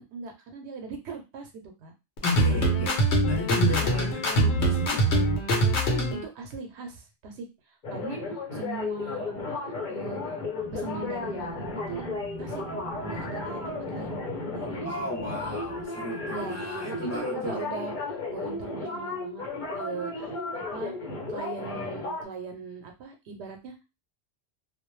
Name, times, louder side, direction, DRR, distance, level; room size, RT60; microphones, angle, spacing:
voice 1, 0.0-1.5 1.8-1.9 3.6-4.3 5.9-10.4 10.7-12.0 12.4-12.6 13.0-14.2 14.5-15.1 16.3-16.6 16.8-17.9 18.3-19.4 19.7-20.9 21.3-23.8, right 5 dB, 80° right, 4 dB, 0.9 m, -40 dB
sound 1, 2.2-6.2, right 1 dB, 80° left, 1.0 m, -23 dB
voice 2, 2.2-5.1 14.8-17.7, left 4 dB, 25° left, -1 dB, 0.4 m, -34 dB
sound 2, 7.8-22.2, left 3 dB, 50° left, 0.8 m, -34 dB
sound 3, 10.6-15.9, right 1 dB, 55° right, 0.5 m, -43 dB
2.3 x 2.0 x 3.0 m, 0.26 s
omnidirectional pair, 1.1 m